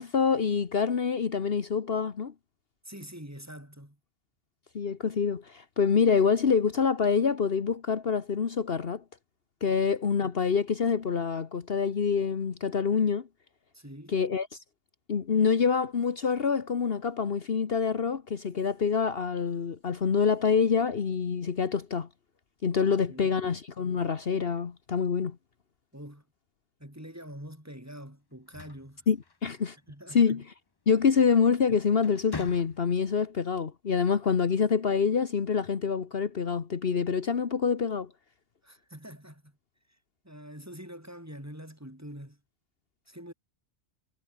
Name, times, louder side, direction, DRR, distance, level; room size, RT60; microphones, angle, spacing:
voice 1, 0.0-2.3 4.7-9.0 9.6-13.3 14.1-14.5 15.1-22.1 22.6-25.4 29.1-29.8 30.1-30.4 30.9-38.1, left 6 dB, 55° left, 1.4 m, -26 dB
voice 2, 2.8-4.0 13.7-14.2 22.8-23.4 25.9-26.2 26.8-29.1 29.9-30.4 38.6-39.6 40.2-42.4 43.1-43.3, equal, 15° right, 4.7 m, -45 dB
sound 1, 28.3-29.9 31.3-31.6 32.0-33.1, left 4 dB, 25° left, 0.7 m, -43 dB
omnidirectional pair, 1.2 m